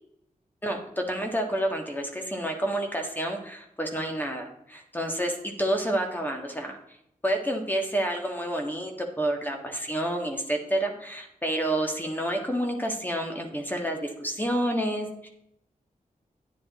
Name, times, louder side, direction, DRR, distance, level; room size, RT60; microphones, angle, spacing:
voice 1, 0.6-6.8 7.2-15.3, right 1 dB, 15° left, 2 dB, 1.5 m, -29 dB
9.9 x 7.9 x 4.1 m, 0.76 s
wide cardioid pair, 90°, 14 cm